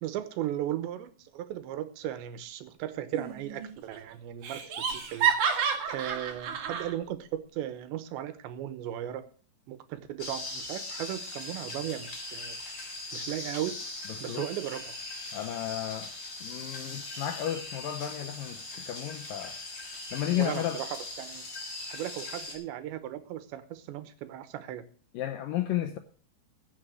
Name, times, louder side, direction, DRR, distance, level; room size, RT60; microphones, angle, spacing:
voice 1, 0.0-5.3 5.9-9.2 9.7-12.6 13.1-13.8 14.2-14.9 20.4-20.9 21.2-21.4 21.9-24.8, right 12 dB, 80° right, 3.3 m, -36 dB
Laughter, 3.1-3.7 3.9-4.0 4.4-6.9, right 7 dB, 55° right, 2.9 m, -29 dB
sound 1, 10.2-22.5, left 2 dB, 30° left, 3.7 m, -40 dB
voice 2, 14.1-14.5 15.3-16.1 16.4-19.6 20.1-20.8 25.1-26.0, left 12 dB, 80° left, 2.0 m, -33 dB
15.5 x 7.3 x 6.3 m
omnidirectional pair, 5.0 m